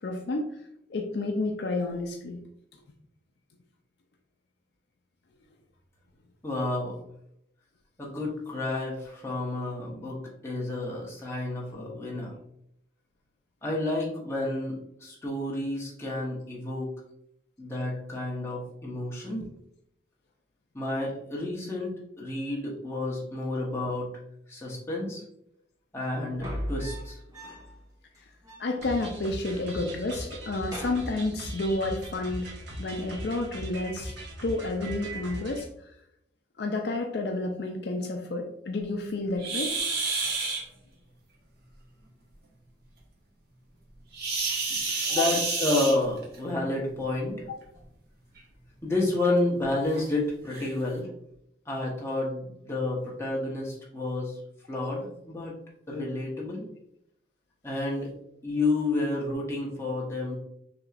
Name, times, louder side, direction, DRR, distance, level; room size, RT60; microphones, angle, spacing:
voice 1, 0.0-0.4 0.9-2.4 28.6-32.5 32.8-34.1 34.4-35.7 36.6-39.7 45.1-45.3 47.5-47.6, left 2 dB, 60° left, 3 dB, 0.5 m, -30 dB
voice 2, 6.4-6.9 8.0-12.3 13.6-16.9 17.6-19.4 20.7-24.1 24.5-25.2 25.9-27.2 44.7-44.8 45.1-47.5 48.8-51.1 51.7-54.4 54.7-55.5 55.9-56.6 57.6-58.1 58.4-60.4, left 2 dB, 15° left, -4 dB, 1.1 m, -30 dB
sound 1, 26.3-27.8 28.1-28.2 28.4-29.4 29.7-30.1 30.4-31.8 33.1-33.4, equal, 20° right, 1.2 m, -39 dB
sound 2, 28.8-35.6, right 1 dB, 70° right, 1.2 m, -39 dB
sound 3, 39.4-40.6 44.1-46.4 47.6-47.8 48.4-48.5 49.0-49.1 49.9-50.0 50.5-50.7, right 4 dB, 55° right, 1.1 m, -29 dB
6.0 x 3.0 x 2.5 m, 0.77 s
head